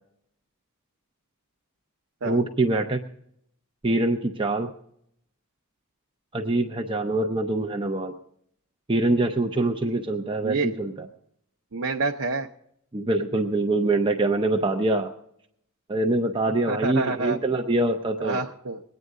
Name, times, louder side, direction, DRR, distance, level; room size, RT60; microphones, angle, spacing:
voice 1, 2.2-3.0 3.8-4.7 6.3-8.1 8.9-11.1 12.9-15.1 15.9-18.4, right 2 dB, 25° right, 4 dB, 0.7 m, -24 dB
voice 2, 11.7-12.5 16.7-17.4 18.2-18.8, right 3 dB, 65° right, 1 dB, 0.7 m, -27 dB
21.0 x 9.4 x 3.7 m, 0.72 s
head